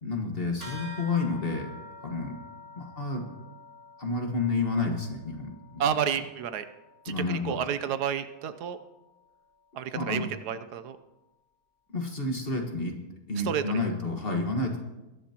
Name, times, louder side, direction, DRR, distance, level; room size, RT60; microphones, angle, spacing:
voice 1, 0.0-1.8 2.0-2.4 2.8-3.3 4.0-5.9 7.1-7.6 9.9-10.3 11.9-12.9 13.3-14.8, left 3 dB, 35° left, 2 dB, 1.7 m, -30 dB
sound 1, 0.6-10.4, left 2 dB, 20° right, 3.5 m, -49 dB
voice 2, 5.8-6.7 7.0-8.8 9.7-11.0 13.4-13.9, right 8 dB, 75° right, 11 dB, 1.2 m, -30 dB
21.5 x 11.0 x 2.9 m, 1.0 s
omnidirectional pair, 1.8 m